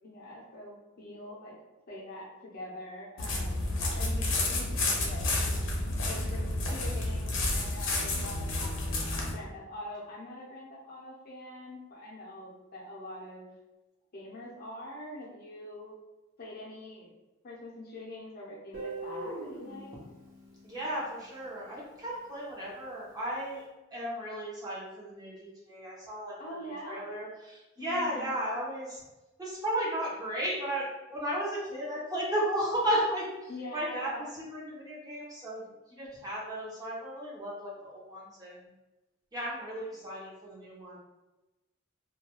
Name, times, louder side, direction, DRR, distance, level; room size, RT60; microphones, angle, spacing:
voice 1, 0.0-1.5 1.9-5.3 6.1-13.5 14.1-16.0 16.4-17.1 17.4-19.9 26.4-27.1 27.8-28.3 33.5-34.4 39.9-40.1, left 1 dB, 50° left, -4 dB, 0.6 m, -44 dB
sound 1, 3.2-9.3, left 2 dB, 85° left, 0.6 m, -30 dB
Guitar, 18.7-21.7, right 2 dB, 45° right, 0.9 m, -42 dB
voice 2, 20.6-23.6 23.9-26.4 26.8-29.0 29.4-38.6 39.3-41.0, equal, 20° right, -7 dB, 0.7 m, -34 dB
2.3 x 2.2 x 2.9 m, 1.0 s
head